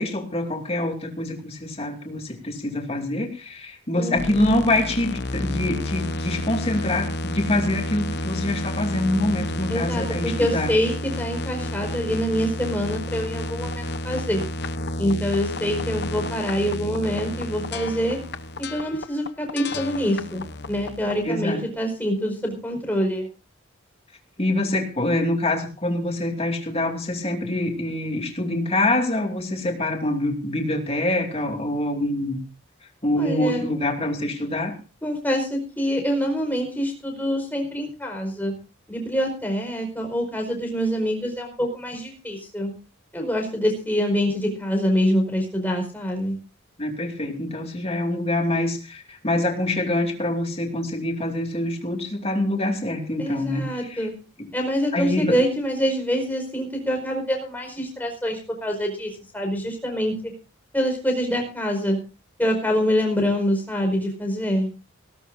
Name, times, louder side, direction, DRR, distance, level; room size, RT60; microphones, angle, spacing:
voice 1, 0.0-10.7 21.2-21.6 24.4-32.4 33.0-34.8 46.8-54.1 54.4-54.5 54.9-55.4, left 1 dB, 30° left, 4 dB, 2.7 m, -25 dB
voice 2, 4.0-4.6 9.7-14.4 15.0-18.2 18.6-20.4 20.7-23.3 33.2-33.7 35.0-38.5 38.9-42.7 43.1-46.3 53.2-54.1 54.5-60.1 60.7-62.0 62.4-64.7, equal, 10° left, 1 dB, 5.1 m, -25 dB
sound 1, 4.2-21.3, left 1 dB, 50° left, 1.0 m, -30 dB
18.5 x 18.0 x 2.6 m, 0.33 s
head